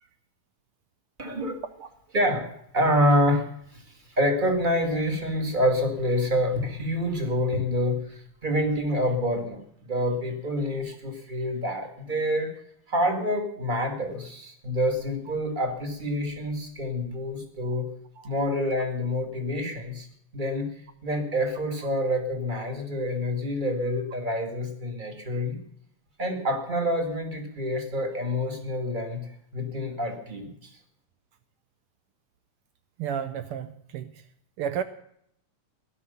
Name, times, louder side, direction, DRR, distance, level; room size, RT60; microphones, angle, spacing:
voice 1, 1.2-1.6 2.1-2.5 2.7-3.5 4.2-8.0 8.4-9.6 9.9-12.5 12.9-17.9 18.2-20.1 20.3-20.7 21.0-25.6 26.2-29.2 29.5-30.5, equal, 20° right, 1.8 m, -27 dB
voice 2, 33.0-34.1 34.6-34.8, right 8 dB, 85° right, 1.2 m, -32 dB
17.0 x 11.5 x 6.9 m
omnidirectional pair, 3.4 m